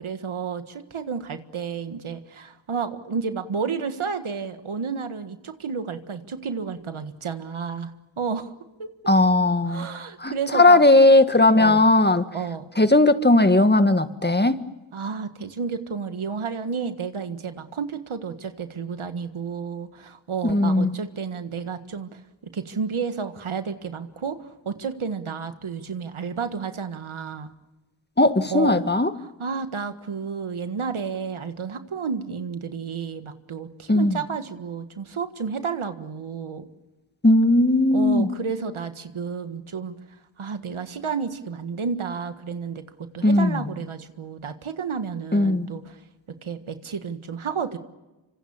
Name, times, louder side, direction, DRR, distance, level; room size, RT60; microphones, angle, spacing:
voice 1, 0.0-8.5 8.8-8.9 9.7-10.8 11.6-11.8 12.3-12.7 14.9-27.5 28.5-28.9 29.2-36.7 37.9-39.9 40.4-46.0 46.4-47.8, right 5 dB, 85° right, 9 dB, 1.7 m, -31 dB
voice 2, 9.1-9.9 10.2-12.2 12.8-14.6 20.4-20.9 28.2-29.1 33.9-34.2 37.2-38.3 43.2-43.7 45.3-45.7, left 2 dB, 20° left, 10 dB, 1.7 m, -17 dB
26.5 x 25.5 x 7.2 m, 1.1 s
cardioid pair, 50°, 48 cm